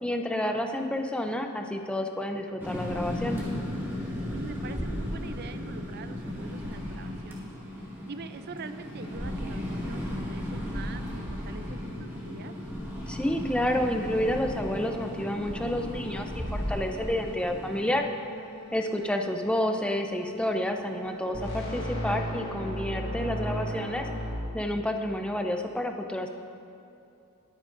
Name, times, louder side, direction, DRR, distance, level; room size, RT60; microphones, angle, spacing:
voice 1, 0.0-3.4 13.1-18.1 18.7-24.1 24.5-26.3, left 1 dB, 5° left, 4 dB, 0.6 m, -29 dB
sound 1, 2.6-18.0, left 1 dB, 10° right, 1.9 m, -35 dB
voice 2, 4.3-7.5 8.1-12.5 18.7-19.1, right 4 dB, 45° right, 10 dB, 0.5 m, -44 dB
sound 2, 10.7-10.8 11.1-11.3 11.7-24.3, equal, 60° left, 3.0 m, -39 dB
20.5 x 8.7 x 2.6 m, 2.6 s
head